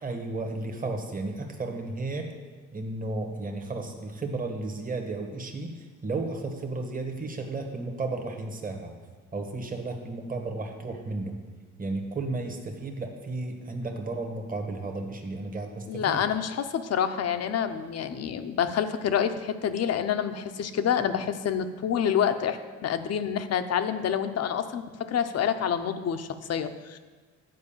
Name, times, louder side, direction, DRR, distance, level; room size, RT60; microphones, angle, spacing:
voice 1, 0.0-2.3 2.7-8.9 9.3-11.4 11.8-16.2, right 2 dB, 30° right, 4 dB, 1.3 m, -33 dB
voice 2, 15.9-27.0, left 8 dB, 55° left, 9 dB, 0.7 m, -28 dB
9.3 x 4.7 x 7.2 m, 1.4 s
cardioid pair, 90°, 30 cm